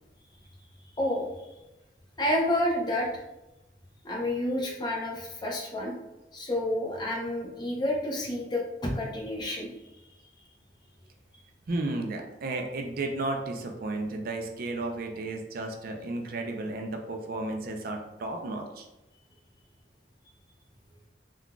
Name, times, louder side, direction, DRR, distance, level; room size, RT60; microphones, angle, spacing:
voice 1, 1.0-1.5 2.2-3.1 4.0-5.9 6.3-9.7, left 1 dB, 25° left, -2 dB, 0.6 m, -29 dB
voice 2, 11.7-18.9, right 2 dB, 55° right, 3 dB, 0.4 m, -33 dB
3.6 x 2.3 x 2.3 m, 0.98 s
head